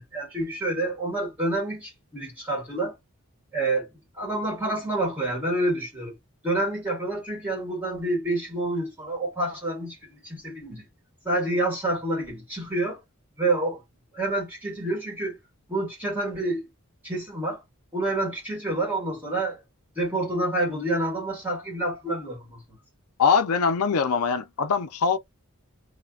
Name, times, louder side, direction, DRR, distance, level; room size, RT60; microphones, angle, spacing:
voice 1, 0.0-2.9 3.5-3.9 4.2-6.2 6.4-10.8 11.2-13.0 13.4-13.8 14.1-15.4 15.7-16.7 17.0-17.6 17.9-19.6 19.9-22.8, right 2 dB, 10° right, 1.6 m, -28 dB
voice 2, 23.2-25.2, left 5 dB, 75° left, 0.5 m, -22 dB
3.2 x 2.1 x 2.3 m
head